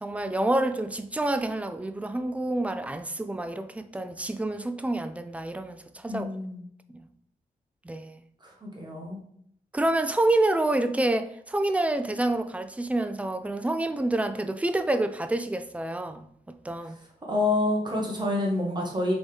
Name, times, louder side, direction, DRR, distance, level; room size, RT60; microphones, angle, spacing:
voice 1, 0.0-6.3 6.9-7.1 7.8-8.2 9.7-16.3 16.6-17.0, right 1 dB, 10° right, 0.3 m, -28 dB
voice 2, 6.0-6.6 8.4-9.2 17.3-19.1, left 2 dB, 30° right, 1.3 m, -28 dB
3.9 x 3.7 x 3.3 m
cardioid pair, 80°, 16 cm